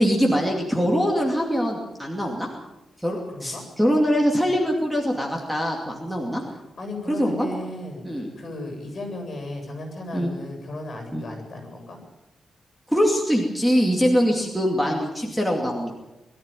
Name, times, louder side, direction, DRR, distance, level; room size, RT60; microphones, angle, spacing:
voice 1, 0.0-2.5 3.0-6.4 7.1-7.5 8.0-8.3 10.1-10.3 11.1-11.2 12.9-15.9, equal, ahead, 0 dB, 2.5 m, -23 dB
voice 2, 3.3-3.6 6.5-12.0, left 1 dB, 40° left, 3 dB, 7.9 m, -35 dB
22.0 x 14.0 x 9.1 m, 0.98 s
wide cardioid pair, 160°, 0 cm